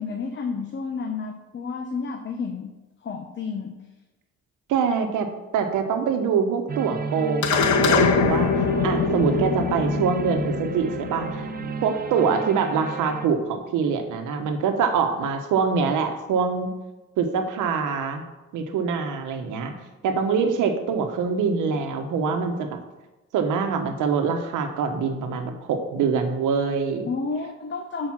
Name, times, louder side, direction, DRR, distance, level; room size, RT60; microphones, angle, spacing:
voice 1, 0.0-2.7 3.0-3.7 12.2-12.3 27.1-28.1, left 4 dB, 40° left, 4 dB, 0.9 m, -31 dB
voice 2, 4.7-8.5 8.8-11.5 11.8-16.7 17.2-18.2 18.5-19.7 20.0-22.8 23.3-27.1, right 6 dB, 85° right, 6 dB, 1.0 m, -24 dB
sound 1, 6.7-13.3, right 4 dB, 30° right, 0.5 m, -33 dB
sound 2, 7.4-12.0, left 5 dB, 70° left, 0.8 m, -24 dB
6.2 x 4.9 x 5.9 m, 1.1 s
cardioid pair, 90°, 30 cm